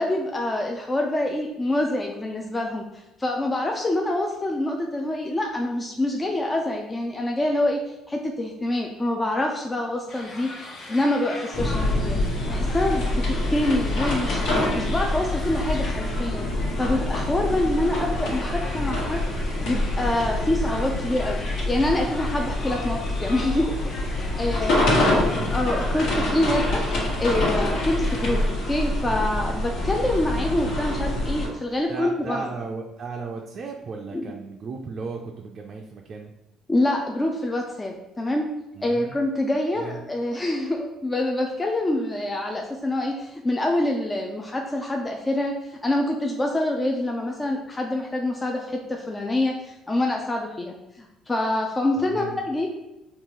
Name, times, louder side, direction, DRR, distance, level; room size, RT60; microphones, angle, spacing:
voice 1, 0.0-2.8 3.2-7.8 8.1-10.5 10.9-12.2 12.5-14.4 14.7-16.5 16.8-19.2 19.7-21.4 21.7-24.8 25.5-32.4 34.1-34.3 36.7-38.5 38.8-52.7, left 1 dB, 20° left, 1 dB, 0.4 m, -26 dB
sound 1, 10.1-28.4, left 2 dB, 50° left, 0.8 m, -40 dB
sound 2, 11.5-31.5, left 1 dB, 70° left, 1.4 m, -26 dB
voice 2, 24.7-25.7 31.9-36.3 38.7-39.2 39.8-40.0 52.0-52.4, right 4 dB, 45° right, 1 dB, 0.4 m, -35 dB
3.7 x 2.4 x 3.0 m, 0.95 s
cardioid pair, 100°, 0 cm